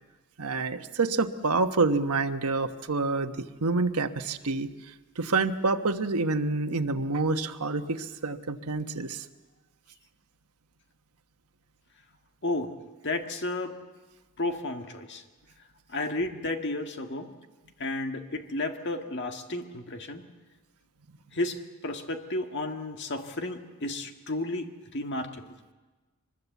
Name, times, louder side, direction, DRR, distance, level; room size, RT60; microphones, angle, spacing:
voice 1, 0.4-4.7 5.2-9.2, right 3 dB, 90° right, 7 dB, 1.2 m, -27 dB
voice 2, 12.4-12.7 13.0-13.8 14.4-15.2 15.9-17.3 17.8-20.2 21.3-25.5, left 2 dB, 50° left, 5 dB, 1.8 m, -32 dB
24.0 x 21.0 x 8.2 m, 1.2 s
head